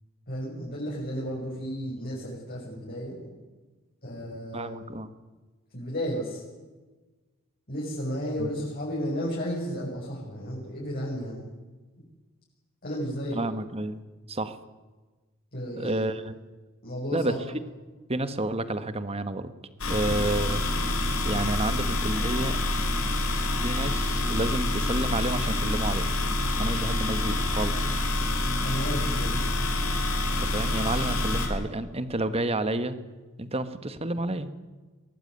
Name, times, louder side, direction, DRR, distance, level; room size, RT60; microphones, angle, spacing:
voice 1, 0.3-3.3 4.0-4.8 5.7-6.4 7.7-11.5 12.8-13.4 15.5-16.1 16.8-17.4 20.0-20.2 28.6-29.4, equal, 45° left, -5 dB, 6.7 m, -33 dB
voice 2, 4.5-5.1 8.4-8.5 13.3-14.0 14.3-14.6 15.7-16.3 17.1-17.3 18.1-19.5 19.9-20.6 21.2-22.6 23.6-26.0 26.6-28.0 30.4-33.0 33.4-34.5, right 2 dB, 30° right, 12 dB, 1.5 m, -30 dB
sound 1, 19.8-31.5, left 2 dB, 70° left, 4.4 m, -27 dB
23.0 x 18.5 x 9.5 m, 1.3 s
head